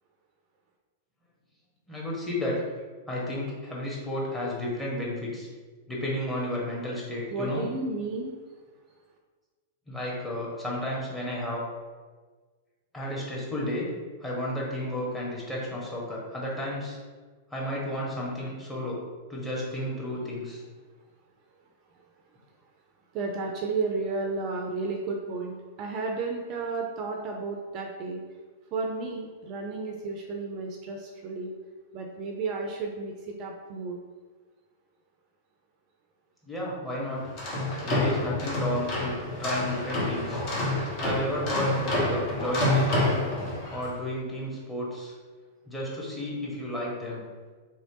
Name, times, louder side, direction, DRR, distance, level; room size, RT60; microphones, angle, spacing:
voice 1, 1.9-2.6 3.1-5.5 5.9-7.7 9.9-11.6 12.9-13.9 14.2-17.0 17.5-19.0 19.3-20.6 36.4-37.3 37.8-39.1 39.4-40.4 41.0-43.2 43.7-45.1 45.7-47.2, left 1 dB, 10° left, -5 dB, 1.2 m, -32 dB
voice 2, 7.3-8.4 21.9-22.1 23.1-28.2 28.7-31.5 31.9-34.0, right 3 dB, 40° right, 1 dB, 0.4 m, -32 dB
sound 1, 37.2-43.9, left 2 dB, 45° left, 1.1 m, -28 dB
3.4 x 3.1 x 2.8 m, 1.4 s
figure-of-eight pair, 100°, 0 cm